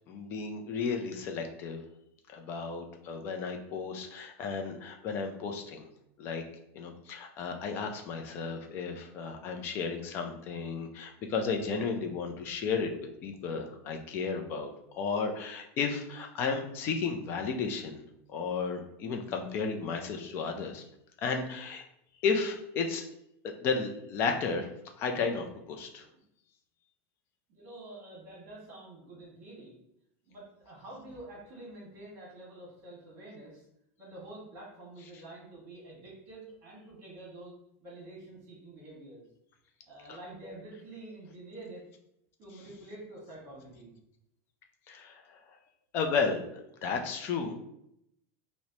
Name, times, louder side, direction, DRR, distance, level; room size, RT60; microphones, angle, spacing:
voice 1, 0.1-1.8 2.3-5.9 6.2-6.4 6.7-12.9 13.2-18.0 18.3-20.8 21.2-21.8 22.2-23.0 23.6-24.7 25.0-26.1 44.9-45.4 45.9-47.6, left 5 dB, 30° left, 3 dB, 0.4 m, -33 dB
voice 2, 27.5-29.8 30.2-33.7 34.0-37.5 37.8-39.3 39.8-41.8 42.4-43.9, right 2 dB, 30° right, -5 dB, 1.4 m, -47 dB
4.4 x 2.0 x 2.7 m, 0.78 s
supercardioid pair, 175°, 8 cm